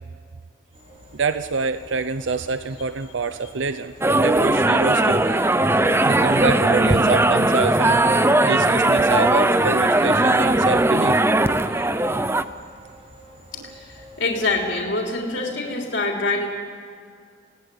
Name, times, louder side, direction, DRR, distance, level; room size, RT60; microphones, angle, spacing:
sound 1, 0.7-14.8, equal, 35° right, 4.5 m, -47 dB
voice 1, 1.1-5.3 6.0-11.2, right 4 dB, 85° right, 11 dB, 0.7 m, -26 dB
sound 2, 4.0-12.4, right 2 dB, 15° right, 0.7 m, -18 dB
voice 2, 13.5-16.5, left 3 dB, 65° left, 0 dB, 3.4 m, -25 dB
27.0 x 18.0 x 9.9 m, 2.1 s
head